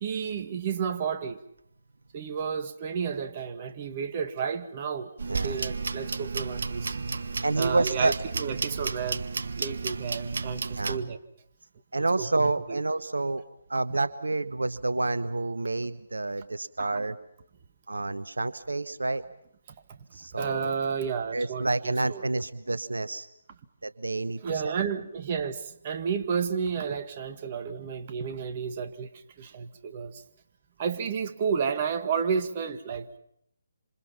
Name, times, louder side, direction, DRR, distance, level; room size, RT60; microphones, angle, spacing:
voice 1, 0.0-1.4 2.1-7.0 7.6-9.3 9.6-11.2 12.0-12.8 16.8-17.0 19.9-20.0 20.4-22.3 24.4-29.1 29.4-30.2 30.8-33.2, right 6 dB, 40° right, 7 dB, 1.9 m, -32 dB
sound 1, 5.2-11.0, right 4 dB, 65° right, 1.3 m, -32 dB
voice 2, 5.3-5.6 7.4-8.1 10.7-11.0 11.9-13.4 13.7-17.2 17.9-19.2 20.1-20.7 21.3-23.3 23.8-24.7, right 2 dB, 80° right, 13 dB, 1.0 m, -29 dB
27.0 x 26.5 x 5.8 m, 0.73 s
figure-of-eight pair, 145°, 0 cm